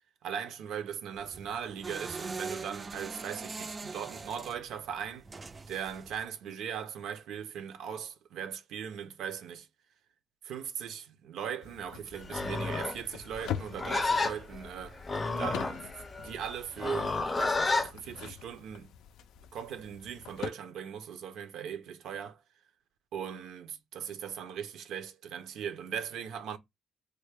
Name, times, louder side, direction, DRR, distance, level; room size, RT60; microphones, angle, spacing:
voice 1, 0.2-5.3 5.7-9.7 10.4-15.0 15.4-18.9 19.5-22.4 23.1-26.6, right 8 dB, 80° right, 0.5 m, -39 dB
sound 1, 1.1-6.2, right 4 dB, 30° right, 0.3 m, -42 dB
sound 2, 11.6-20.5, left 10 dB, 85° left, 0.3 m, -44 dB
Livestock farm animals working animals, 12.2-17.9, left 3 dB, 30° left, 0.5 m, -31 dB
3.3 x 2.1 x 3.3 m
cardioid pair, 90°, 0 cm